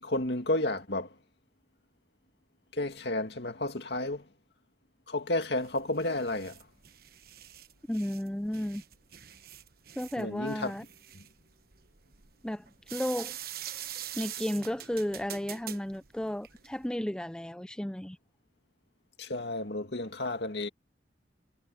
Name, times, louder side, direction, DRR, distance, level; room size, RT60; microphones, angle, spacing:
voice 1, 0.0-1.1 2.7-4.2 5.1-6.5 10.2-10.7 19.2-20.7, left 2 dB, 70° left, 2.3 m, -31 dB
sound 1, 5.6-16.9, right 11 dB, 55° right, 1.2 m, -45 dB
voice 2, 7.9-8.8 10.0-10.8 12.4-13.4 14.1-18.2, equal, 5° left, 0.4 m, -33 dB
head